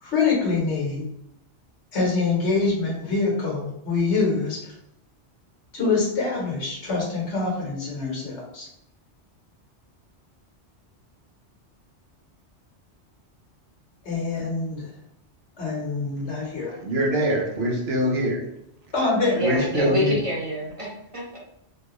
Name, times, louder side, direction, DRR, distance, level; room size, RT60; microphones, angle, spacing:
voice 1, 0.0-1.0 1.9-4.7 5.7-8.7 14.0-14.8 15.6-16.8 18.9-19.4, left 4 dB, 80° left, -3 dB, 1.4 m, -25 dB
voice 2, 16.8-18.4 19.4-20.1, equal, 70° right, 0 dB, 0.9 m, -23 dB
voice 3, 19.3-21.4, left 1 dB, 30° right, -5 dB, 0.8 m, -27 dB
3.5 x 2.3 x 3.0 m, 0.79 s
omnidirectional pair, 1.1 m